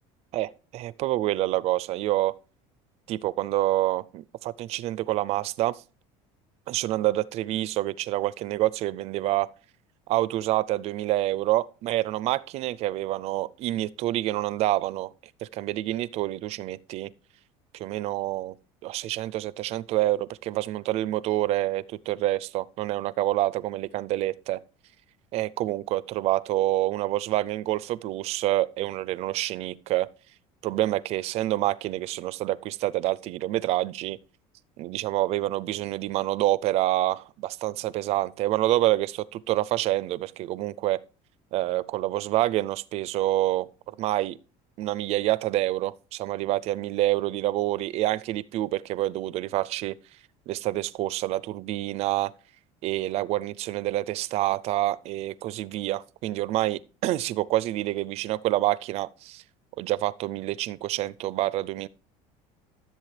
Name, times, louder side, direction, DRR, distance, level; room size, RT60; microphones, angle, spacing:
voice 1, 0.3-2.3 3.1-5.8 6.7-9.5 10.1-15.1 15.4-17.1 17.7-18.5 18.8-24.6 25.3-30.1 30.6-34.2 34.8-41.0 41.5-43.7 44.0-44.4 44.8-50.0 50.5-52.3 52.8-59.4 59.8-61.9, right 15 dB, 50° right, 0.4 m, -27 dB
13.5 x 7.4 x 3.3 m
cardioid pair, 145°, 14 cm